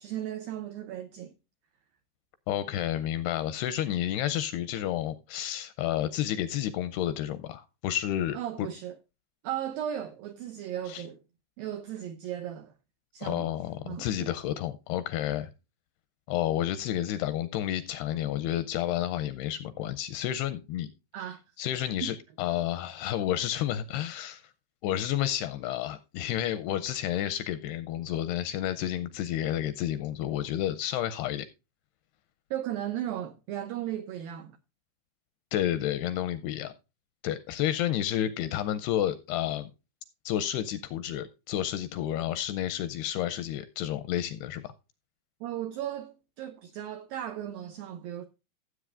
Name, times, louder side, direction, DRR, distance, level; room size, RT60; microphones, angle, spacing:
voice 1, 0.0-1.3 8.3-8.9 9.4-11.2 11.6-12.7 13.1-13.5 13.9-14.3 21.1-21.4 22.0-22.1 32.5-34.5 45.4-48.2, right 11 dB, 85° right, 2.0 m, -36 dB
voice 2, 2.5-8.4 10.9-11.0 13.2-15.5 16.3-20.9 21.6-24.4 24.8-31.5 35.5-36.7 37.2-39.7 40.3-44.7, left 12 dB, 80° left, 2.4 m, -30 dB
16.0 x 8.0 x 2.5 m
omnidirectional pair, 5.2 m